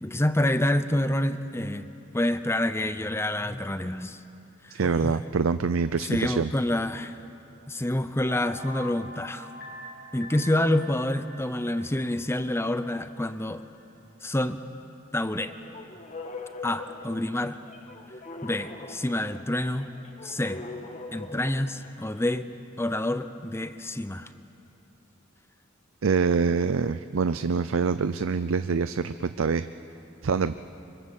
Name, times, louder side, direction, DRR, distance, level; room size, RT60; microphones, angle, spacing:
voice 1, 0.0-1.9 2.1-4.2 4.8-5.1 6.0-7.2 7.7-9.5 10.1-13.6 14.2-14.6 15.1-15.5 16.6-17.6 18.4-19.9 20.2-20.6 21.1-22.5 22.8-24.3, left 1 dB, 10° left, 11 dB, 0.8 m, -27 dB
voice 2, 4.7-6.5 26.0-29.7 30.2-30.5, right 5 dB, 70° right, 12 dB, 0.5 m, -25 dB
sound 1, 8.2-13.5 13.8-13.9, left 1 dB, 55° left, 4.1 m, -45 dB
sound 2, 15.4-22.3, left 3 dB, 35° left, 1.7 m, -42 dB
24.5 x 24.5 x 7.4 m, 2.7 s
head